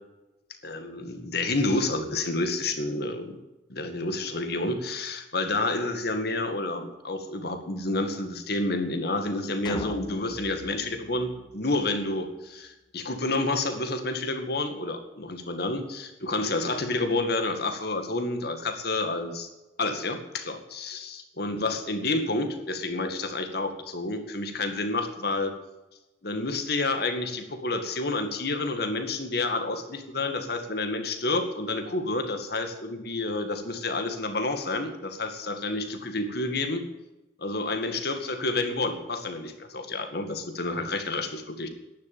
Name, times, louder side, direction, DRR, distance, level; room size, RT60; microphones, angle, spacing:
voice 1, 0.6-3.4 3.7-19.5 19.8-25.5 26.2-36.9 37.4-41.7, left 2 dB, 60° left, 7 dB, 2.1 m, -29 dB
sound 1, 9.6-12.1, left 2 dB, 25° left, 0.8 m, -38 dB
11.5 x 10.5 x 9.2 m, 1.0 s
head